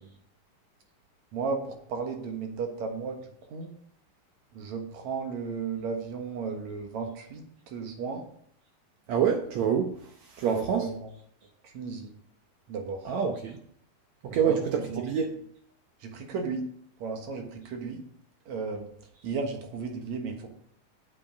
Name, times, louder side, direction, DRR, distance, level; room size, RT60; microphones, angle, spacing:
voice 1, 1.3-3.2 3.5-3.7 4.5-8.2 10.4-11.1 11.6-12.1 12.7-13.1 14.5-14.6 14.9-15.0 16.0-16.6 17.0-18.0 18.5-18.9 19.2-20.5, right 5 dB, 60° right, 4 dB, 2.3 m, -34 dB
voice 2, 9.1-10.9 13.0-13.6 14.2-15.3, right 7 dB, 80° right, 3 dB, 1.6 m, -27 dB
8.5 x 7.7 x 5.1 m, 0.64 s
omnidirectional pair, 4.3 m